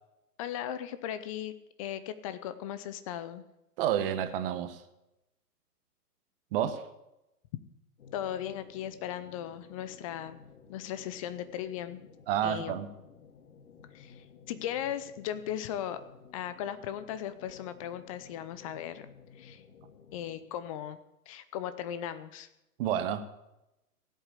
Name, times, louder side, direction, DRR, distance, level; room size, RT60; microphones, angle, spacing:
voice 1, 0.4-1.5 1.8-3.4 8.1-10.4 10.7-12.1 12.4-12.7 13.9-16.0 16.3-19.1 19.4-19.6 20.1-21.0 21.3-22.5, left 10 dB, 20° left, 0.6 m, -37 dB
voice 2, 3.8-4.8 6.5-6.9 12.3-12.9 22.8-23.3, right 10 dB, 35° right, 1.4 m, -30 dB
sound 1, 8.0-20.5, left 6 dB, 60° left, 1.9 m, -55 dB
16.5 x 8.2 x 8.3 m
hypercardioid pair, 130°, 47 cm